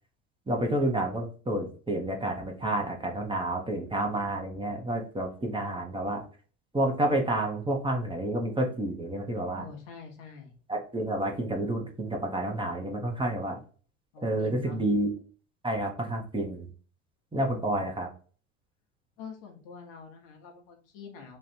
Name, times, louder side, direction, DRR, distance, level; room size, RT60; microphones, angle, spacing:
voice 1, 0.5-6.2 6.7-9.7 10.7-13.6 14.2-15.1 15.6-16.7 17.3-18.1, right 1 dB, 15° right, 1 dB, 1.0 m, -29 dB
voice 2, 9.6-10.5 14.1-14.8 17.7-17.9 19.2-21.4, left 5 dB, 60° left, 3 dB, 1.1 m, -45 dB
3.2 x 2.5 x 4.3 m, 0.41 s
hypercardioid pair, 70°, 37 cm